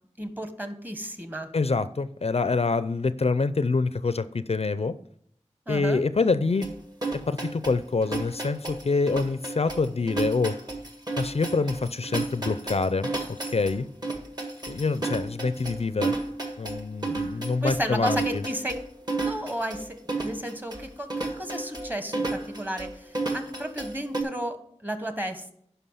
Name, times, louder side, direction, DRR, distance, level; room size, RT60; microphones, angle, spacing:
voice 1, 0.2-1.5 5.7-6.0 17.6-18.7 19.2-25.5, right 1 dB, 15° right, 9 dB, 1.3 m, -33 dB
voice 2, 1.5-4.9 5.7-6.6 7.3-10.5 11.2-13.1 13.5-13.9 14.7-16.2 16.6-18.4, left 4 dB, 60° left, 13 dB, 0.4 m, -26 dB
sound 1, 6.6-24.2, right 3 dB, 35° right, 1.7 m, -32 dB
10.0 x 5.6 x 5.6 m, 0.68 s
wide cardioid pair, 50°, 12 cm